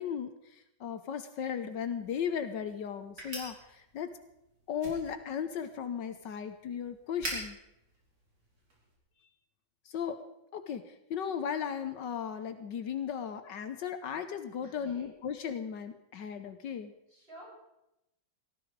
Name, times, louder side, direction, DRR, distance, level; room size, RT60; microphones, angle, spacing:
voice 1, 0.0-4.1 4.7-7.6 9.8-10.2 10.5-16.9, left 7 dB, 70° left, 10 dB, 1.5 m, -36 dB
sound 1, 1.8-8.9, right 1 dB, 65° right, 5.3 m, -46 dB
voice 2, 14.6-15.1 17.1-17.5, right 1 dB, 30° right, -5 dB, 7.4 m, -51 dB
18.5 x 14.0 x 4.7 m, 0.87 s
omnidirectional pair, 2.0 m